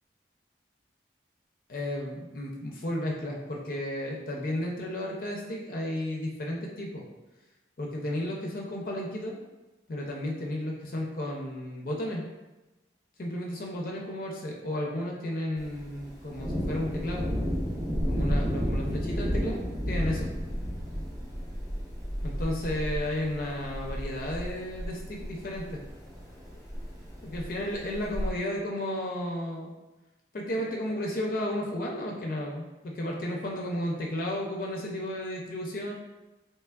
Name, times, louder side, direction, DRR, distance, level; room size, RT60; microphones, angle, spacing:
voice 1, 1.7-7.0 7.8-9.4 9.9-12.2 13.2-17.3 18.1-19.6 19.9-20.3 22.2-25.8 27.2-29.7 30.3-35.9, left 1 dB, 50° left, -1 dB, 0.4 m, -33 dB
Thunder, 15.6-28.3, equal, 20° right, 0.5 m, -33 dB
3.3 x 3.1 x 2.3 m, 1.1 s
head